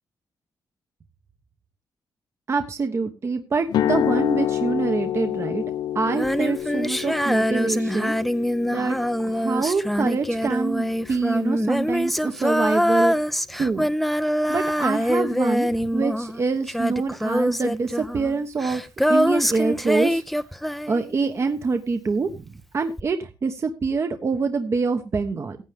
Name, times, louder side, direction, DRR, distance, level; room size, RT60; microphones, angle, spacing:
voice 1, 2.5-5.6 5.9-8.2 8.7-9.0 9.3-13.1 13.6-13.9 14.5-18.8 19.1-20.2 20.9-22.4 22.7-25.6, right 4 dB, 40° right, 6 dB, 1.2 m, -25 dB
sound 1, 3.7-11.7, left 11 dB, 80° left, 0.6 m, -29 dB
Female singing, 6.1-21.4 23.0-23.1, equal, ahead, 0.6 m, -24 dB
15.5 x 9.0 x 3.5 m, 0.28 s
cardioid pair, 105°, 7 cm